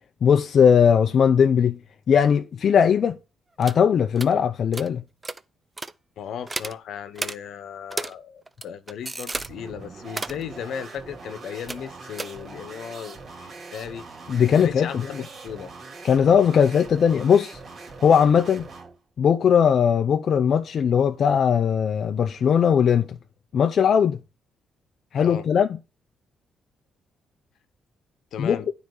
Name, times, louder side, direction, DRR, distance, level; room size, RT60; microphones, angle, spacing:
voice 1, 0.2-1.8 2.1-3.2 3.6-5.0 14.3-15.2 16.0-17.6 18.0-18.7 19.2-23.2 23.5-24.2 25.1-25.7 28.4-28.6, left 7 dB, 55° left, 0.6 m, -19 dB
sound 1, 3.6-3.8 4.2-4.3 4.7-4.9 5.2-5.4 5.8-5.9 6.5-6.8 7.2-7.4 7.9-8.1 8.5-9.5 10.0-10.4 11.7-11.9 12.2-12.3, right 2 dB, 20° right, 0.6 m, -32 dB
voice 2, 6.2-14.0 14.6-15.7 25.2-25.5 28.3-28.7, left 8 dB, 75° left, 1.1 m, -36 dB
sound 2, 9.3-19.0, right 3 dB, 50° right, 2.9 m, -42 dB
9.4 x 5.0 x 4.8 m
cardioid pair, 90°, 0 cm